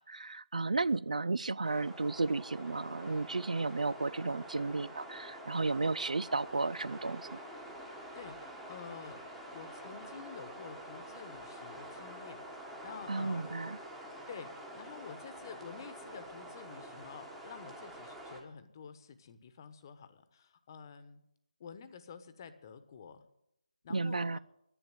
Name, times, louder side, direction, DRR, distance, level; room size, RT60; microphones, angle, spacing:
voice 1, 0.0-7.4 13.1-13.8 23.9-24.4, right 3 dB, 70° right, 20 dB, 0.4 m, -33 dB
sound 1, 1.6-18.4, right 1 dB, 5° right, 1.2 m, -47 dB
voice 2, 8.1-9.2 9.5-13.7 14.3-21.2 21.6-23.2 23.8-24.4, left 6 dB, 30° left, 11 dB, 1.2 m, -49 dB
11.0 x 10.0 x 9.1 m, 0.79 s
figure-of-eight pair, 155°, 4 cm